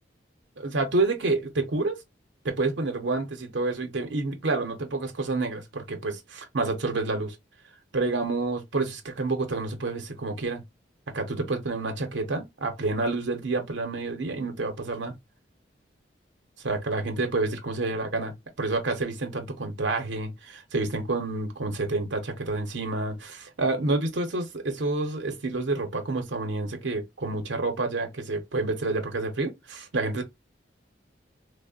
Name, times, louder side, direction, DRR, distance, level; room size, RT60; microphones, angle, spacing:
voice 1, 0.6-2.0 2.4-7.4 7.9-10.6 11.1-15.1 16.6-18.3 18.6-30.2, right 3 dB, 75° right, 0.7 m, -28 dB
3.5 x 2.1 x 2.3 m
head